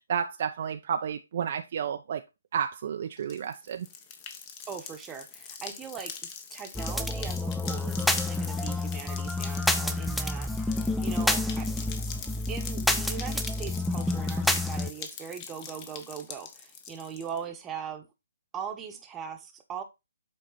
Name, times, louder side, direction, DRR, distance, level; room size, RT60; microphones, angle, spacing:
voice 1, 0.0-2.2 2.5-3.9, right 8 dB, 50° right, 0.6 m, -31 dB
sound 1, 3.2-17.4, left 7 dB, 25° left, 1.1 m, -43 dB
voice 2, 4.7-11.9 12.5-18.1 18.5-19.8, right 7 dB, 15° right, 1.1 m, -40 dB
sound 2, 6.7-14.9, left 1 dB, ahead, 0.5 m, -29 dB
7.5 x 4.5 x 4.0 m
hypercardioid pair, 145°, 0 cm